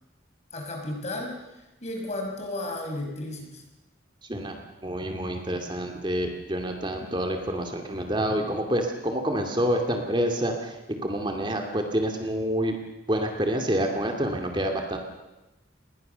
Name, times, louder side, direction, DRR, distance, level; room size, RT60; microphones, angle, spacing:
voice 1, 0.5-1.4 1.8-3.6, left 1 dB, 35° left, 2 dB, 5.9 m, -33 dB
voice 2, 4.8-10.5 10.9-12.7 13.1-15.0, equal, 25° right, 3 dB, 2.5 m, -27 dB
28.5 x 21.0 x 6.9 m, 1.0 s
head